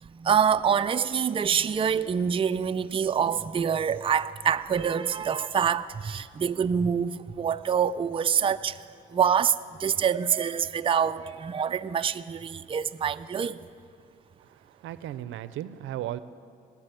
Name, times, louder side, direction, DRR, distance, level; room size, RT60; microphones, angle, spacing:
voice 1, 0.0-8.8 9.1-13.6, right 7 dB, 25° right, 0.4 m, -26 dB
voice 2, 14.8-16.2, right 12 dB, 80° right, 0.6 m, -35 dB
19.5 x 7.5 x 9.1 m
cardioid pair, 90°, 20 cm